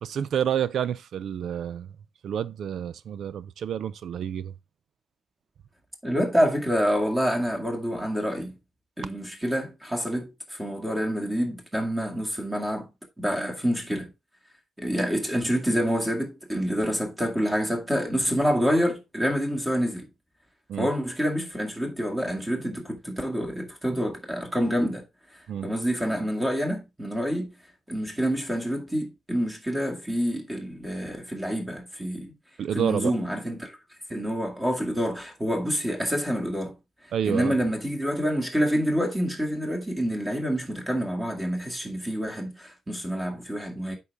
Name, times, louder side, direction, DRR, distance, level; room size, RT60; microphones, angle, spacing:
voice 1, 0.0-1.9 2.2-4.5 20.7-20.9 25.5-25.7 32.6-33.1 37.1-37.5, right 9 dB, 65° right, 0.4 m, -29 dB
voice 2, 6.0-8.5 9.0-12.9 13.2-14.1 14.8-20.1 20.8-25.0 25.6-27.5 27.9-32.3 32.7-33.8 34.1-36.7 37.2-44.0, equal, 10° right, 2.1 m, -27 dB
8.3 x 5.4 x 3.4 m
wide cardioid pair, 150°, 0 cm